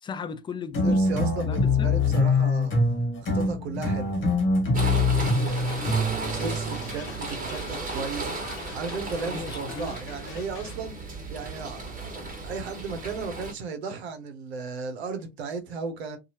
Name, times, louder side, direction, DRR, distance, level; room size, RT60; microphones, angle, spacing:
voice 1, 0.0-2.0 5.0-5.9 6.2-6.6 9.3-10.0, left 5 dB, 15° left, 0.4 m, -38 dB
sound 1, 0.7-7.1, left 2 dB, 40° left, 1.2 m, -24 dB
voice 2, 0.8-2.8 3.3-4.1 5.4-5.8 6.2-8.3 8.7-11.0 11.3-16.2, right 4 dB, 85° right, 0.8 m, -35 dB
sound 2, 4.7-13.5, right 3 dB, 25° right, 1.4 m, -35 dB
sound 3, 4.8-10.8, left 7 dB, 55° left, 0.8 m, -44 dB
2.7 x 2.4 x 2.8 m
hypercardioid pair, 80°, 31 cm